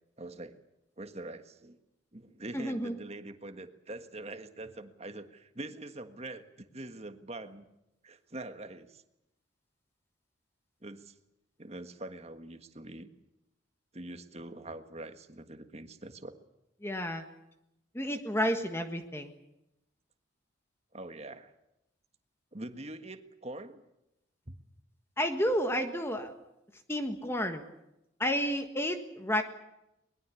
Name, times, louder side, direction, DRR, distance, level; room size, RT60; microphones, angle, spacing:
voice 1, 0.2-0.6 1.0-1.8 2.1-7.6 8.0-9.0 10.8-11.1 11.6-13.1 13.9-16.3 20.9-21.5 22.5-23.8 24.5-24.6, right 2 dB, 35° right, 9 dB, 1.6 m, -44 dB
voice 2, 2.5-3.0 16.8-17.2 17.9-19.3 25.2-26.4 26.9-27.6 28.2-29.4, equal, 15° left, 6 dB, 1.5 m, -31 dB
22.0 x 21.0 x 8.4 m, 0.89 s
head